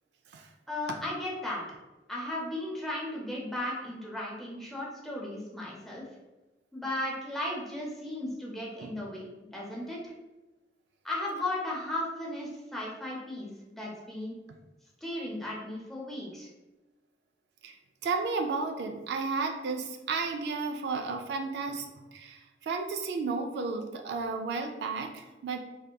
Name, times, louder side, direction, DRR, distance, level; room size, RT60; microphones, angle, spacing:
voice 1, 0.7-1.6 2.1-6.0 6.7-9.3 9.5-10.1 11.0-13.5 13.8-14.3 15.0-16.5, left 1 dB, ahead, -5 dB, 0.7 m, -35 dB
voice 2, 18.0-21.9 22.1-25.6, right 4 dB, 70° right, 4 dB, 0.3 m, -33 dB
3.5 x 2.7 x 2.2 m, 1.1 s
head